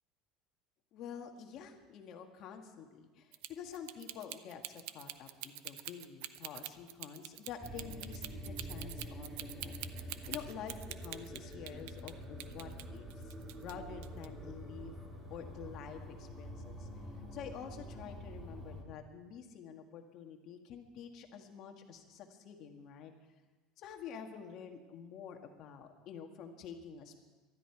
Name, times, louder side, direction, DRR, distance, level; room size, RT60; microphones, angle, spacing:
voice 1, 0.9-14.9 15.3-16.9 17.3-23.1 23.8-27.2, left 7 dB, 45° left, 5 dB, 1.6 m, -48 dB
sound 1, 3.3-12.1 12.4-13.7 14.0-14.3, right 15 dB, 80° right, 0.6 m, -45 dB
sound 2, 7.6-18.8, equal, 15° right, 2.0 m, -47 dB
18.5 x 12.5 x 4.7 m, 1.3 s
cardioid pair, 155°, 0 cm